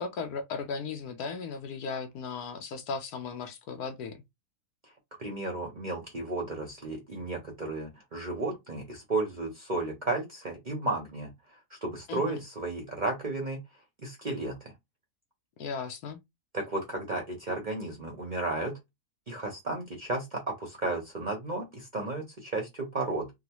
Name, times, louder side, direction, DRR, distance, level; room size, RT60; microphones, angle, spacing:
voice 1, 0.0-4.2 12.1-12.4 15.6-16.2, left 5 dB, 75° left, 1.2 m, -36 dB
voice 2, 5.2-13.6 14.0-14.7 16.5-18.8 19.3-23.3, right 2 dB, 45° right, 0.6 m, -33 dB
3.8 x 2.0 x 2.9 m
omnidirectional pair, 1.7 m